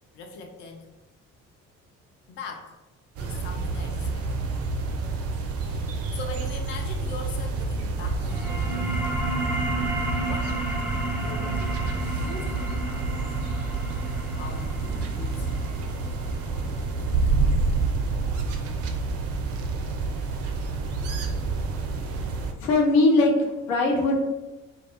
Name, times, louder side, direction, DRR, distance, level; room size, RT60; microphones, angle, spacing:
voice 1, 0.1-0.9 2.3-2.8 3.2-4.3 5.6-9.1 10.2-10.6 11.2-13.3 14.3-15.7 22.0-22.1, left 3 dB, 30° left, 3 dB, 0.4 m, -41 dB
sound 1, 3.2-22.5, right 3 dB, 35° right, 0.4 m, -28 dB
sound 2, 8.1-19.2, right 1 dB, 5° right, 0.8 m, -33 dB
voice 2, 22.6-24.1, left 2 dB, 65° left, 0 dB, 0.8 m, -20 dB
2.4 x 2.2 x 3.2 m, 1.1 s
figure-of-eight pair, 45°, 43 cm